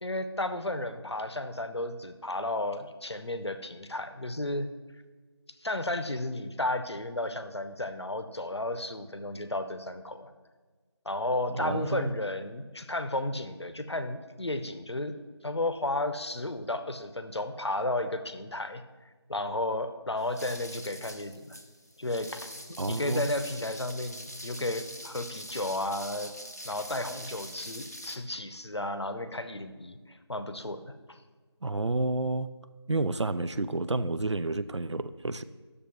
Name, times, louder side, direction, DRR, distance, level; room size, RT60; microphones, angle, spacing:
voice 1, 0.0-4.7 5.6-10.3 11.1-15.1 15.4-18.8 19.3-21.6 22.0-26.3 26.6-31.2, left 1 dB, 70° left, 10 dB, 0.7 m, -33 dB
voice 2, 11.5-12.1 22.8-23.3 31.6-32.5 32.9-35.4, right 2 dB, 85° right, 13 dB, 0.5 m, -30 dB
sound 1, 20.2-28.2, equal, 35° left, 0.5 m, -44 dB
10.5 x 6.7 x 3.0 m, 1.4 s
figure-of-eight pair, 175°, 14 cm